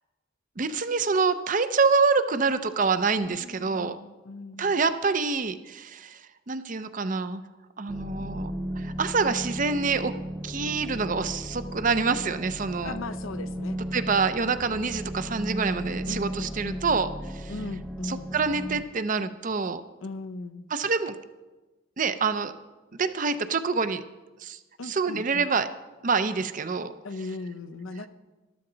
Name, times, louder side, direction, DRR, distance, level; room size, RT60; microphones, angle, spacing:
voice 1, 0.6-4.0 4.6-6.2 6.5-7.4 7.8-10.2 10.4-13.0 13.9-17.5 18.0-19.8 20.7-21.2 22.0-22.5 23.0-24.0 24.4-24.6 24.9-25.7 26.0-26.9, right 4 dB, 40° right, 11 dB, 0.6 m, -26 dB
voice 2, 3.2-4.8 12.8-13.8 16.1-16.8 17.5-18.3 20.0-20.6 24.8-25.4 27.0-28.1, left 3 dB, 80° left, 11 dB, 0.7 m, -38 dB
sound 1, 7.9-18.8, equal, 5° left, 0.6 m, -35 dB
13.0 x 12.5 x 3.9 m, 1.2 s
head